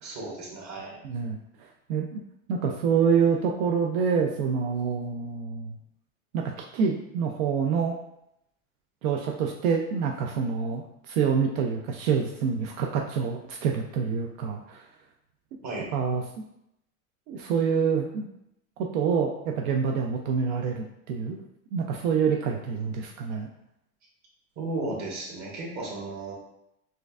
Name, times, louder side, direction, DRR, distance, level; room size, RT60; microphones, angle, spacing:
voice 1, 0.0-1.0 15.6-15.9 24.6-26.3, right 2 dB, 40° right, -3 dB, 1.4 m, -34 dB
voice 2, 1.0-2.2 2.5-5.8 6.3-8.0 9.0-14.8 15.9-16.2 17.3-18.3 18.8-21.4 21.7-23.5, right 6 dB, 85° right, 2 dB, 0.5 m, -27 dB
4.4 x 2.5 x 2.3 m, 0.81 s
supercardioid pair, 115°, 41 cm